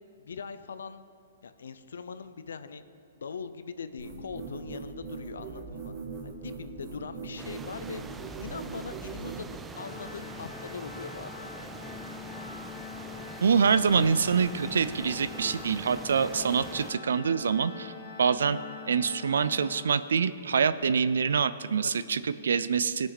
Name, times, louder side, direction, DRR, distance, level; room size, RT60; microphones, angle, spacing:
voice 1, 0.2-1.0 1.4-2.8 3.2-5.9 6.2-8.0 8.4-11.7 21.8-22.2, left 5 dB, 85° left, 12 dB, 0.6 m, -41 dB
sound 1, 4.0-9.4, right 4 dB, 40° right, 2.1 m, -40 dB
sound 2, 7.4-16.9, right 4 dB, 10° right, 0.5 m, -44 dB
Organ, 9.7-20.5, left 7 dB, 65° left, 1.8 m, -44 dB
voice 2, 13.4-17.9 18.2-18.6 18.9-23.1, right 6 dB, 85° right, 15 dB, 0.4 m, -25 dB
18.5 x 6.2 x 4.1 m, 2.3 s
hypercardioid pair, 145°, 0 cm